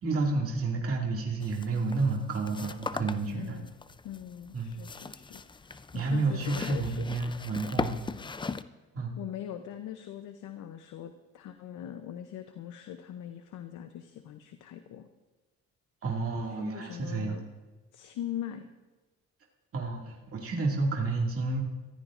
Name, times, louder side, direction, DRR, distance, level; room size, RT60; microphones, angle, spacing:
voice 1, 0.0-3.6 4.5-4.8 5.9-8.0 8.9-9.1 16.0-17.4 19.7-21.6, right 3 dB, 50° right, -2 dB, 2.3 m, -30 dB
sound 1, 1.4-8.6, left 4 dB, 15° left, 0.4 m, -39 dB
voice 2, 3.2-3.7 4.0-7.1 9.2-15.1 16.5-17.4 17.9-18.7, left 10 dB, 80° left, 8 dB, 0.8 m, -41 dB
22.5 x 15.0 x 2.5 m, 1.2 s
cardioid pair, 90°, 30 cm